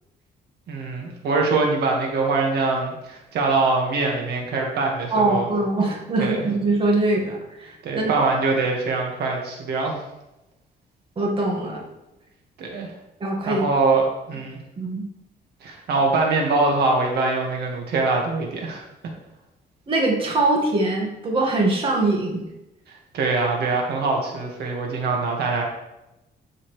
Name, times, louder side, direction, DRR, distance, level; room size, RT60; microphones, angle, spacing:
voice 1, 0.7-5.5 6.2-6.4 7.8-10.0 12.6-12.9 13.4-14.6 15.6-18.8 23.1-25.6, right 3 dB, 75° right, 0 dB, 1.8 m, -23 dB
voice 2, 5.1-8.1 11.2-11.8 13.2-13.7 14.8-15.0 19.9-22.4, right 2 dB, 30° right, -1 dB, 1.8 m, -22 dB
12.5 x 5.7 x 3.3 m, 0.93 s
cardioid pair, 155°, 17 cm